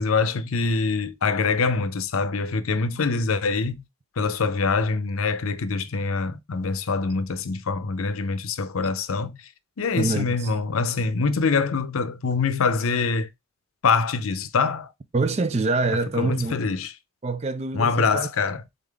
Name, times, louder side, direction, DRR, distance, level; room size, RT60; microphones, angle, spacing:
voice 1, 0.0-3.8 4.2-9.4 9.8-13.3 13.8-14.9 16.2-16.9 17.7-18.6, left 4 dB, 85° left, 0.6 m, -24 dB
voice 2, 10.0-10.5 15.1-16.5 17.2-18.3, right 3 dB, 30° right, 0.4 m, -25 dB
3.8 x 3.8 x 3.4 m
head